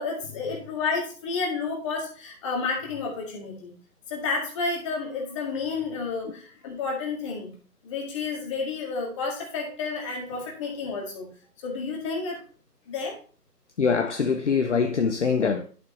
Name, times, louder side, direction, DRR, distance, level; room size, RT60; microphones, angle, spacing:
voice 1, 0.0-3.7 4.1-7.5 7.8-11.3 11.6-12.4 12.9-13.2, left 4 dB, 20° left, 1.9 m, -30 dB
voice 2, 13.8-15.6, left 5 dB, 45° left, 0.7 m, -23 dB
11.0 x 6.3 x 3.1 m
figure-of-eight pair, 155°, 49 cm